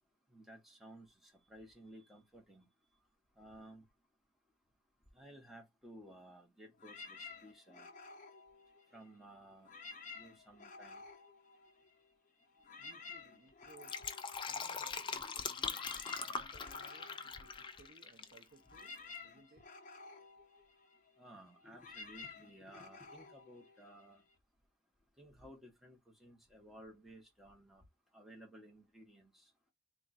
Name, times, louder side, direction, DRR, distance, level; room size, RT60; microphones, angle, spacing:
voice 1, 0.3-2.7 3.4-3.8 5.1-7.9 8.9-9.7 10.1-11.0 21.2-24.2 25.2-27.8 28.1-29.4, right 1 dB, ahead, 1.0 m, -56 dB
sound 1, 6.8-9.2 9.6-12.1 12.4-24.3, left 4 dB, 40° left, 0.8 m, -53 dB
voice 2, 12.8-14.0 14.5-15.9 16.3-19.7, right 3 dB, 50° right, 0.5 m, -63 dB
Fill (with liquid), 13.6-18.4 18.7-18.8, left 5 dB, 25° left, 0.4 m, -41 dB
3.6 x 2.3 x 4.1 m
head